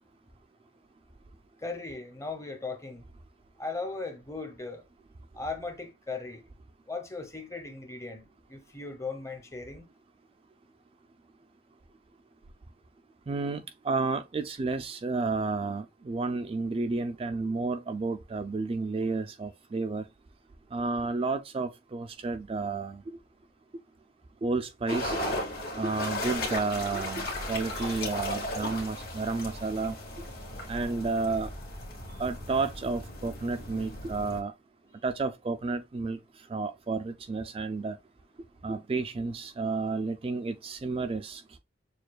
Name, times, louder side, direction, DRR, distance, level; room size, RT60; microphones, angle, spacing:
voice 1, 1.6-3.0 3.6-4.8 5.3-6.4 6.9-9.8 32.1-32.2, left 3 dB, 15° left, 0.8 m, -38 dB
voice 2, 13.3-20.0 20.7-23.2 24.4-25.2 25.8-29.9 30.7-31.5 32.2-34.5 35.0-36.2 36.5-38.0 38.6-41.6, right 3 dB, 30° right, 0.3 m, -31 dB
sound 1, 24.9-34.4, left 1 dB, 55° left, 1.7 m, -36 dB
6.6 x 2.3 x 2.2 m
head